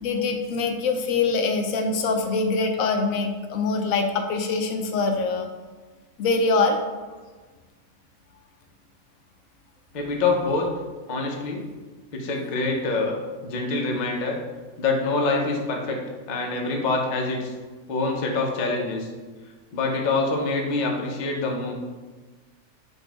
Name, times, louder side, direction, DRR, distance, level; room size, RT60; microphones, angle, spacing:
voice 1, 0.0-5.5 6.2-6.8, left 4 dB, 80° left, 4 dB, 1.0 m, -24 dB
voice 2, 9.9-10.7 11.1-11.6 12.1-13.1 13.4-14.4 14.8-16.0 16.3-17.5 17.9-19.1 19.7-21.7, left 3 dB, 45° left, 1 dB, 0.6 m, -25 dB
4.4 x 2.6 x 4.5 m, 1.3 s
omnidirectional pair, 1.4 m